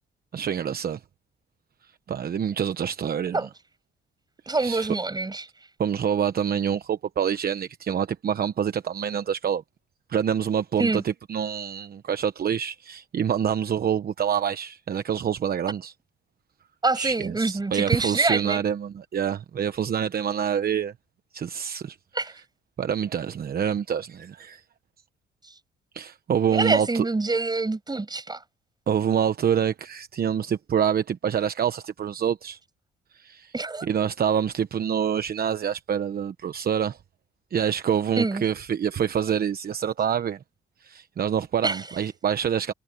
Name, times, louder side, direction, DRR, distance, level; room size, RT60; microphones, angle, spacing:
voice 1, 0.3-1.0 2.1-3.5 4.6-4.9 5.8-9.6 10.1-15.9 16.9-20.9 21.3-22.0 22.8-24.6 25.9-27.0 28.9-32.6 33.1-33.5 33.8-37.0 37.5-40.4 40.8-42.7, right 8 dB, 50° right, 1.1 m, -26 dB
voice 2, 4.5-5.5 10.8-11.0 16.8-18.6 22.1-22.3 26.5-28.4 33.5-33.9 38.2-38.4 41.6-41.8, right 3 dB, 20° right, 6.6 m, -25 dB
cardioid pair, 90°, 20 cm